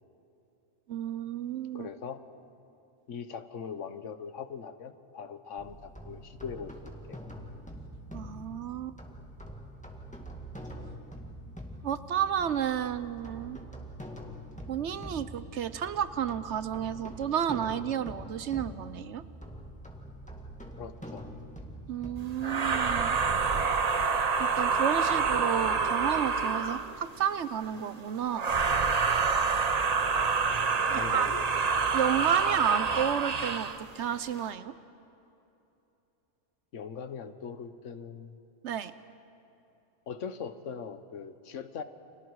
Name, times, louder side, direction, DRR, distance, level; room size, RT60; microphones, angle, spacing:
voice 1, 0.9-1.9 8.1-9.0 11.8-13.6 14.7-19.2 21.9-23.2 24.4-28.5 30.9-31.3 31.9-34.7 38.6-38.9, right 9 dB, 70° right, 13 dB, 1.0 m, -31 dB
voice 2, 1.7-2.2 3.1-6.7 7.1-7.2 20.8-21.2 22.4-22.8 30.9-31.4 36.7-38.4 40.1-41.8, left 6 dB, 75° left, 10 dB, 1.3 m, -41 dB
sound 1, 5.6-22.8, equal, 5° left, 2.0 m, -45 dB
sound 2, 22.4-27.0 28.3-33.8, right 5 dB, 35° right, 0.8 m, -27 dB
30.0 x 26.0 x 4.8 m, 2.9 s
omnidirectional pair, 1.3 m